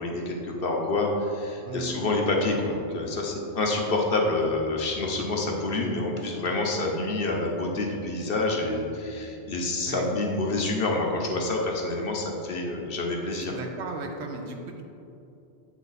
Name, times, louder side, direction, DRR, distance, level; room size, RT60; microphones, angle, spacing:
voice 1, 0.0-13.6, left 2 dB, 60° left, 0 dB, 0.9 m, -27 dB
voice 2, 1.6-2.0 9.9-10.0 13.3-14.8, right 3 dB, 70° right, 3 dB, 1.0 m, -36 dB
8.3 x 3.3 x 4.0 m, 2.6 s
omnidirectional pair, 1.2 m